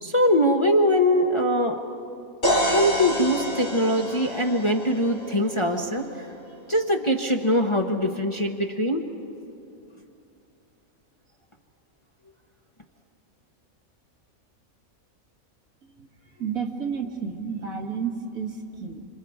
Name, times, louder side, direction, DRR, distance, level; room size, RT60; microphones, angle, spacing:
voice 1, 0.0-1.8 2.7-6.1 6.7-9.0, equal, 25° left, 3 dB, 0.8 m, -22 dB
sound 1, 2.4-6.3, equal, 65° left, 3.4 m, -28 dB
voice 2, 16.4-19.1, right 6 dB, 75° right, 3 dB, 2.0 m, -31 dB
27.0 x 26.5 x 4.8 m, 2.7 s
omnidirectional pair, 1.5 m